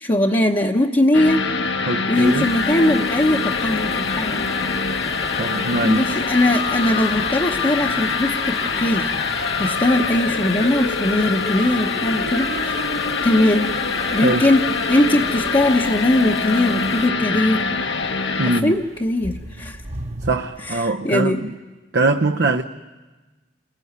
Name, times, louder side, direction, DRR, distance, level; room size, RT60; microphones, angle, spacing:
voice 1, 0.0-1.5 2.1-4.5 5.8-9.1 9.6-12.8 13.2-13.7 14.1-17.7 18.4-19.8 20.6-21.4, left 1 dB, 25° left, 1.0 m, -20 dB
sound 1, 1.1-18.6, left 4 dB, 75° left, 1.6 m, -24 dB
voice 2, 1.9-2.5 5.4-6.0 14.1-14.4 18.4-18.8 20.2-21.5 21.9-22.6, right 2 dB, 60° right, 0.8 m, -22 dB
sound 2, 2.1-17.1, equal, ahead, 1.0 m, -38 dB
sound 3, 12.7-20.3, right 1 dB, 35° right, 1.1 m, -39 dB
29.0 x 22.0 x 9.5 m
head